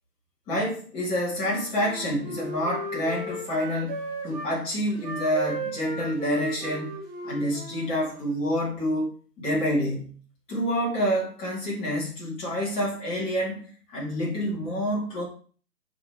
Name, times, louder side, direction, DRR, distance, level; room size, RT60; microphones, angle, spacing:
voice 1, 0.5-6.9 7.2-10.1 10.5-13.6 13.9-15.2, equal, 10° left, -5 dB, 2.0 m, -28 dB
Wind instrument woodwind instrument, 1.4-4.5 4.9-8.4, right 2 dB, 20° right, 1.9 m, -36 dB
6.2 x 4.3 x 4.5 m, 0.42 s
figure-of-eight pair, 145°, 50 cm